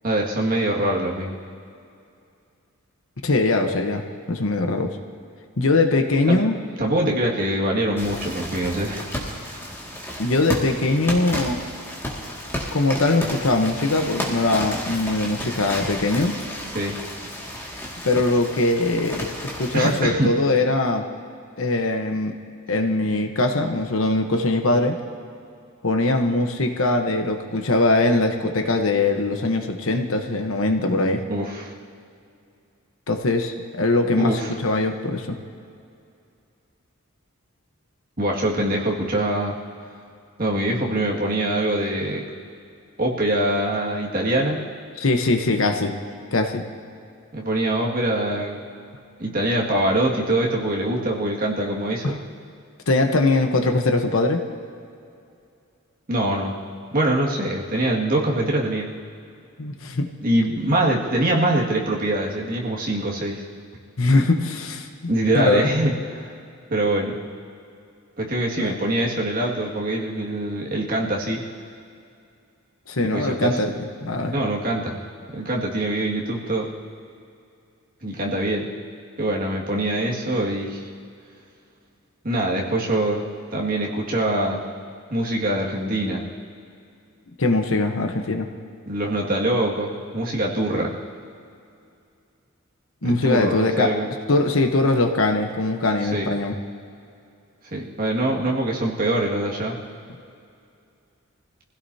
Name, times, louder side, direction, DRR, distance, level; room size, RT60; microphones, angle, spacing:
voice 1, 0.0-1.3 6.3-6.4 6.8-9.0 9.5-9.6 16.7-17.0 19.7-20.3 31.3-31.7 34.0-34.6 38.2-39.6 40.4-42.2 43.0-44.6 47.3-48.6 49.2-52.2 56.1-56.6 56.9-58.9 60.2-63.5 65.1-66.3 66.7-67.2 68.2-71.4 73.0-73.6 74.3-75.0 75.3-76.7 78.0-78.7 79.2-80.9 82.2-83.2 83.5-84.6 85.1-86.2 88.9-90.9 93.0-94.1 96.0-96.3 97.7-99.8, right 1 dB, 40° right, -3 dB, 2.1 m, -24 dB
voice 2, 3.2-4.0 4.3-5.0 5.6-6.6 10.2-11.6 12.7-16.3 18.0-21.0 21.6-22.3 22.7-25.0 25.8-31.2 33.1-35.4 45.0-45.9 46.3-46.6 52.0-52.1 52.9-54.4 59.6-60.1 64.0-65.7 68.6-68.7 72.9-73.7 74.0-74.3 87.4-88.5 93.0-93.9 94.3-96.5, left 2 dB, 70° left, 5 dB, 1.1 m, -21 dB
sound 1, 8.0-20.0, equal, 10° left, 2.1 m, -32 dB
25.0 x 16.0 x 2.8 m, 2.5 s
head